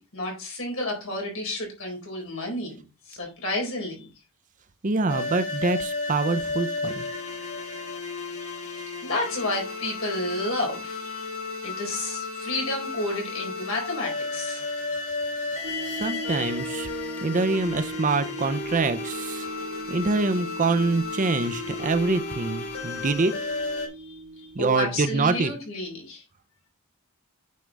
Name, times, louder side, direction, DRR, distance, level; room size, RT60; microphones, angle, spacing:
voice 1, 0.1-4.1 8.4-8.7 9.0-11.3 11.6-14.6 15.6-16.5 24.1-24.2 24.6-26.2, left 2 dB, 65° left, 4.2 m, -31 dB
voice 2, 4.8-7.1 15.8-16.9 17.2-19.5 19.9-23.3 24.5-25.5, right 3 dB, 35° right, 0.6 m, -25 dB
sound 1, 5.1-23.9, left 3 dB, 80° left, 2.7 m, -33 dB
sound 2, 15.6-24.8, right 2 dB, 70° right, 1.5 m, -38 dB
9.3 x 5.4 x 3.5 m
head